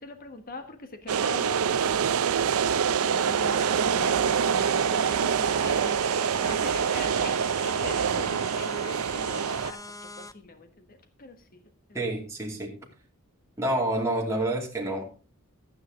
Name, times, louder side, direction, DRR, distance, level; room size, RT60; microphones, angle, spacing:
voice 1, 0.0-2.4 3.0-11.6 11.9-12.1, left 2 dB, 40° left, 7 dB, 1.4 m, -43 dB
sound 1, 1.1-9.7, right 7 dB, 80° right, 0.5 m, -25 dB
sound 2, 3.1-10.3, left 2 dB, 15° left, 0.6 m, -42 dB
voice 2, 11.9-12.7 13.6-15.0, right 1 dB, 15° right, -3 dB, 2.6 m, -28 dB
13.0 x 9.4 x 3.8 m, 0.34 s
head